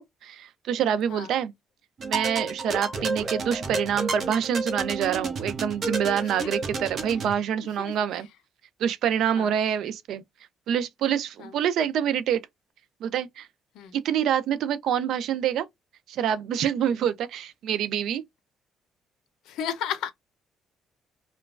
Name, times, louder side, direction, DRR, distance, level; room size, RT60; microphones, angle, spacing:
voice 1, 0.2-1.5 2.0-8.3 8.8-10.2 10.7-12.4 13.0-13.5 13.9-15.7 16.1-18.2, right 9 dB, 70° right, 0.4 m, -26 dB
sound 1, 2.0-7.3, right 3 dB, 45° right, 0.7 m, -31 dB
voice 2, 6.2-6.9 7.8-8.3 9.4-9.6 11.4-11.6 13.7-13.9 16.8-17.1 19.4-20.1, left 9 dB, 85° left, 0.5 m, -36 dB
2.9 x 2.2 x 2.3 m
cardioid pair, 125°, 0 cm